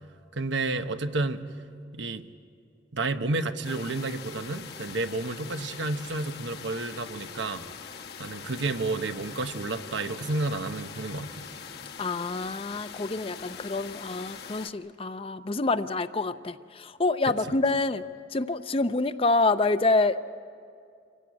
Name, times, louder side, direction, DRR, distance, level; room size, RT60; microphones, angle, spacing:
voice 1, 0.4-1.4 1.9-2.2 2.9-7.6 8.2-11.5 17.3-17.6, right 2 dB, 85° right, 9 dB, 1.0 m, -31 dB
sound 1, 3.6-14.7, left 6 dB, 60° left, 1.1 m, -43 dB
voice 2, 12.0-18.0 18.3-20.2, left 3 dB, 30° left, 12 dB, 0.6 m, -27 dB
25.5 x 16.5 x 9.6 m, 2.4 s
head